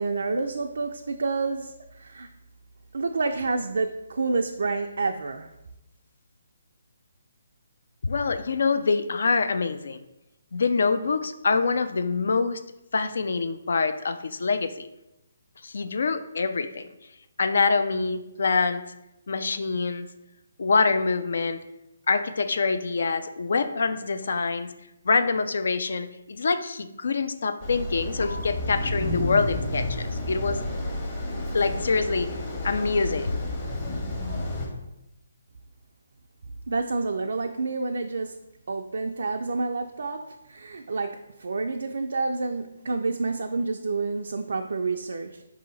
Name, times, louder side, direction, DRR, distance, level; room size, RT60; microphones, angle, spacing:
voice 1, 0.0-2.3 2.9-5.5 36.7-38.4 38.7-45.4, right 3 dB, 70° right, 0.3 m, -29 dB
voice 2, 8.0-10.0 10.5-12.6 12.9-14.9 15.6-16.8 17.4-18.8 19.3-20.1 20.6-21.6 22.1-24.7 25.0-30.6 31.5-32.3 32.6-33.4, left 4 dB, 65° left, 0.4 m, -25 dB
sound 1, 27.6-34.7, left 1 dB, 30° left, 1.2 m, -31 dB
4.9 x 2.8 x 3.9 m
hypercardioid pair, 150°, 0 cm